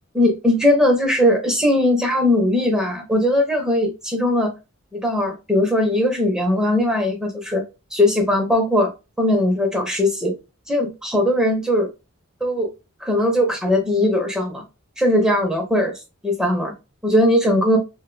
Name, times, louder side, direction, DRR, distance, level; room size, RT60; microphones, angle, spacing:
voice 1, 0.1-4.5 4.9-7.6 7.9-8.9 9.2-10.3 10.7-11.9 12.4-12.7 13.0-14.6 15.0-15.9 16.2-16.7 17.0-17.8, left 1 dB, 5° right, 1 dB, 0.6 m, -19 dB
2.4 x 2.2 x 3.9 m, 0.27 s
head